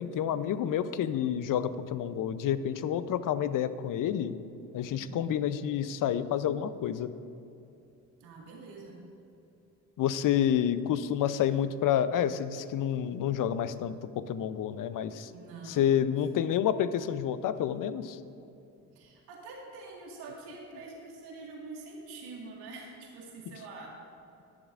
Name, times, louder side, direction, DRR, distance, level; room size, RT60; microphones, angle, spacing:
voice 1, 0.0-4.4 4.7-7.1 10.0-15.3 15.7-18.2, left 9 dB, 60° left, 13 dB, 0.6 m, -29 dB
voice 2, 5.0-5.5 8.2-9.0 15.3-16.1 18.9-24.0, right 3 dB, 85° right, -2 dB, 1.9 m, -46 dB
20.5 x 7.1 x 2.5 m, 2.7 s
supercardioid pair, 65°, 37 cm